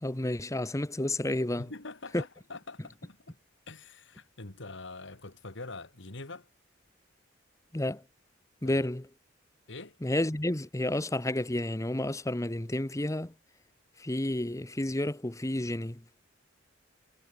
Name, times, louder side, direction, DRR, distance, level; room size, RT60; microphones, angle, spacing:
voice 1, 0.0-1.7 2.1-2.2 7.7-8.0 8.6-9.0 10.0-13.3 14.0-16.0, left 1 dB, 15° left, 1.0 m, -30 dB
voice 2, 1.6-3.4 3.7-6.5 8.6-8.9 9.7-10.0, left 3 dB, 65° left, 2.3 m, -44 dB
head